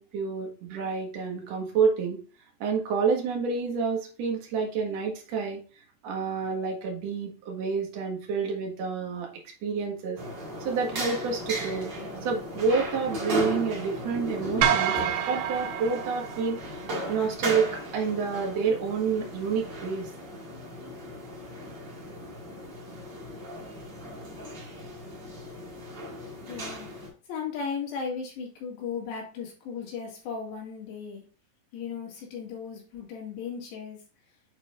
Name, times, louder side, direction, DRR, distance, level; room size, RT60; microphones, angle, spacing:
voice 1, 0.0-2.2 2.6-5.6 6.0-9.3 9.6-10.2 10.6-11.9 12.2-14.9 15.3-16.6 17.1-20.1, right 5 dB, 55° right, 0 dB, 2.0 m, -28 dB
sound 1, 10.2-27.1, equal, 40° right, 1.7 m, -36 dB
sound 2, 14.6-17.0, right 10 dB, 90° right, 2.7 m, -28 dB
voice 2, 26.5-26.9 27.3-31.2 31.7-34.0, left 6 dB, 90° left, -1 dB, 4.2 m, -36 dB
9.4 x 4.6 x 2.5 m, 0.37 s
omnidirectional pair, 4.7 m